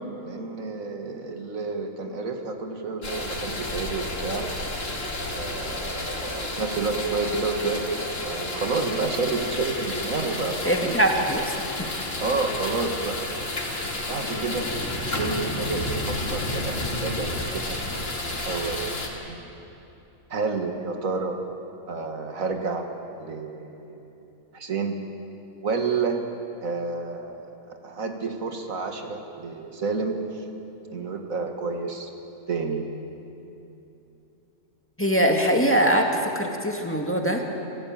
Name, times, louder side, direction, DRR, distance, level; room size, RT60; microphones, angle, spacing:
voice 1, 0.2-4.5 5.3-10.9 12.2-13.2 14.1-14.7 15.0-17.8 18.2-19.4 20.3-21.4 21.9-22.9 23.2-24.1 24.5-25.0 25.6-26.2 26.6-27.4 27.7-30.4 30.9-32.1 32.5-32.9, right 4 dB, 75° right, 4 dB, 2.1 m, -30 dB
sound 1, 3.0-19.1, left 2 dB, 65° left, 2.8 m, -31 dB
voice 2, 10.6-11.7 35.0-37.4, right 1 dB, 10° left, 2 dB, 1.9 m, -22 dB
28.0 x 15.0 x 8.8 m, 2.9 s
omnidirectional pair, 1.4 m